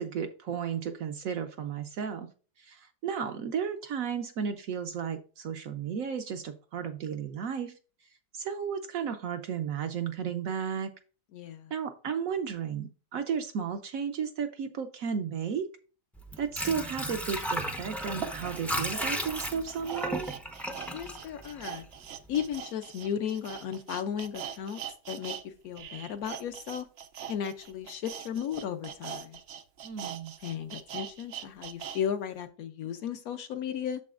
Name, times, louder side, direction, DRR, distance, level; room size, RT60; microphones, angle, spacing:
voice 1, 0.0-2.3 2.6-7.7 8.3-10.9 11.7-15.7 16.4-20.3 29.8-30.3, right 7 dB, 65° right, 7 dB, 0.9 m, -33 dB
voice 2, 11.3-11.7 20.9-21.8 22.3-24.8 25.1-26.9 27.3-29.4 30.4-34.0, left 8 dB, 70° left, 8 dB, 1.0 m, -35 dB
Water / Sink (filling or washing), 16.2-22.0 22.4-22.5, equal, ahead, 0.3 m, -35 dB
sound 1, 17.3-17.4 18.1-25.4 25.7-32.0 32.4-32.5, right 8 dB, 85° right, 0.5 m, -42 dB
8.3 x 6.8 x 2.4 m, 0.38 s
omnidirectional pair, 1.8 m